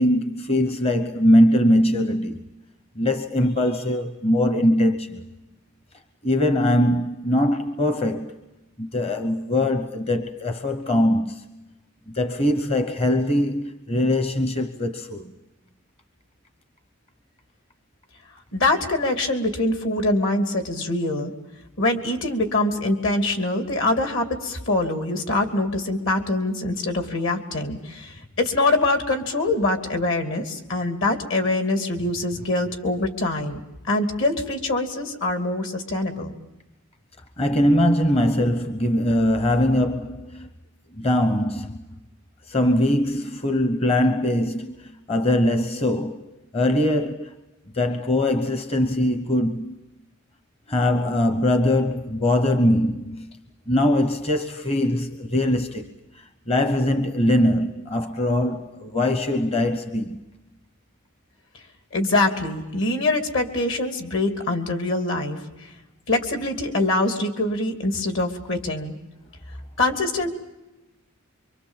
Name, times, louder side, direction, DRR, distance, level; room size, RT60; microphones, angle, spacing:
voice 1, 0.0-2.4 3.0-5.3 6.2-8.4 8.8-11.6 12.1-15.3 37.4-40.5 40.9-41.8 42.5-47.4 47.7-49.8 50.7-53.3 53.7-60.2, left 1 dB, 30° left, 1.0 m, -22 dB
voice 2, 18.5-21.3 21.8-33.6 33.9-36.3 61.9-65.4 66.1-68.9 69.8-70.3, left 2 dB, 65° left, 2.9 m, -24 dB
26.0 x 24.5 x 7.4 m
head